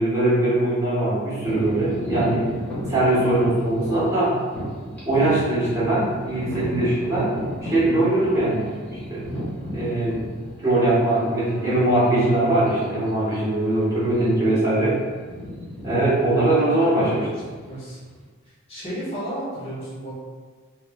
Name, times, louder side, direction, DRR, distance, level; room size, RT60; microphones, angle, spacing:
voice 1, 0.0-2.5 2.9-4.4 5.0-7.3 7.6-10.2 10.6-15.0 15.8-17.2, right 1 dB, 15° right, -11 dB, 1.1 m, -21 dB
sound 1, 1.4-11.2 11.8-11.9 12.6-12.8 13.1-13.3 14.0-14.5 14.8-18.2, equal, 10° left, 1.2 m, -34 dB
Bowed string instrument, 10.8-16.0, left 1 dB, 70° right, 0.8 m, -42 dB
voice 2, 14.4-14.9 16.4-18.0 18.7-20.1, right 1 dB, 25° left, -12 dB, 1.1 m, -33 dB
3.1 x 3.1 x 2.2 m, 1.5 s
head